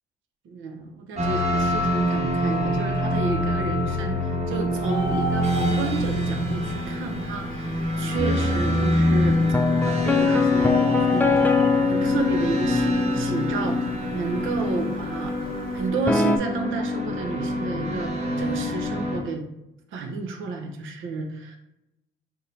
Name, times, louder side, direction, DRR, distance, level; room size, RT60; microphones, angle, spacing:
voice 1, 0.4-4.2 4.5-9.4 9.8-11.3 11.9-13.8 14.1-15.3 15.7-19.4 19.9-21.6, right 3 dB, 80° right, 5 dB, 0.7 m, -31 dB
sound 1, 1.2-19.2, equal, 35° right, 1.0 m, -26 dB
Bird, 4.7-15.9, left 1 dB, 45° left, 0.7 m, -37 dB
sound 2, 8.2-13.9 16.1-16.4, left 4 dB, 10° left, 0.3 m, -23 dB
3.8 x 2.2 x 4.3 m, 0.90 s
cardioid pair, 90°, 20 cm